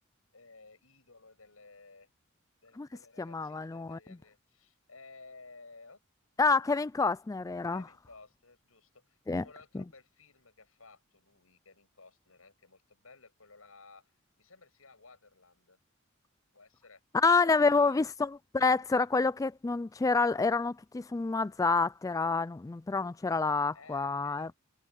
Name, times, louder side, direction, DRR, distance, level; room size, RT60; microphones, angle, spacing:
voice 1, 0.3-2.1 2.6-6.0 7.7-14.1 14.4-15.8 16.5-17.0 17.4-18.0 23.7-24.5, left 3 dB, 90° left, 7.2 m, -56 dB
voice 2, 3.2-4.0 6.4-7.8 9.3-9.4 9.7-9.8 17.1-24.5, left 4 dB, 15° left, 0.3 m, -28 dB
head